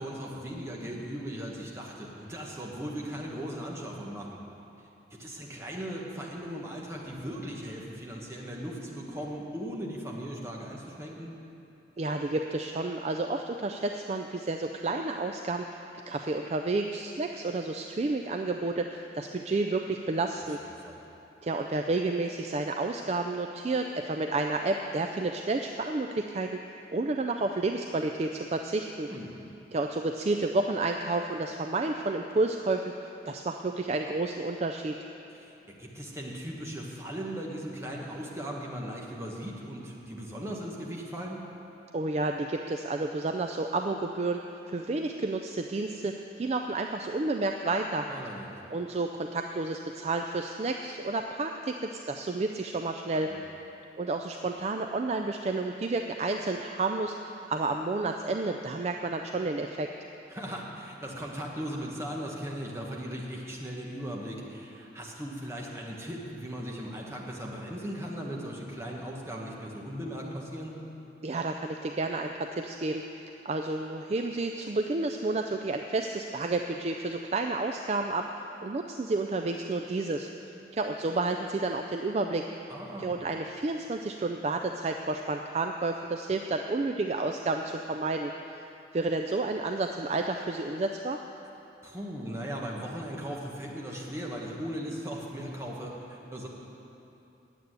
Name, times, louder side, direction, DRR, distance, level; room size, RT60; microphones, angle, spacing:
voice 1, 0.0-4.4 5.1-11.3 20.8-21.0 29.1-29.3 35.3-41.4 48.1-48.7 53.3-53.4 60.3-70.8 82.7-83.1 91.8-96.5, equal, 15° right, -2 dB, 1.3 m, -38 dB
voice 2, 12.0-20.6 21.4-29.1 29.7-35.0 41.9-48.1 48.7-53.3 54.0-59.9 71.2-73.0 73.4-80.3 80.7-82.4 83.0-88.7 88.9-91.2, right 2 dB, 35° right, 4 dB, 0.3 m, -31 dB
8.9 x 8.1 x 9.3 m, 2.9 s
head